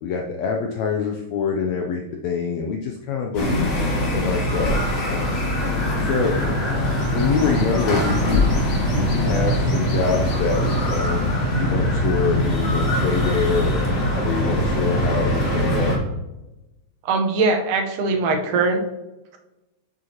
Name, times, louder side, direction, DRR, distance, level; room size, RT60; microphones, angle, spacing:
voice 1, 0.0-3.7 4.1-6.6 7.1-8.5 8.9-15.9, left 5 dB, 75° left, 2 dB, 1.7 m, -26 dB
sound 1, 3.3-16.0, equal, 40° left, 1.6 m, -22 dB
voice 2, 17.1-18.8, right 3 dB, 85° right, 3 dB, 2.6 m, -21 dB
7.8 x 7.8 x 2.9 m, 1.0 s
omnidirectional pair, 3.6 m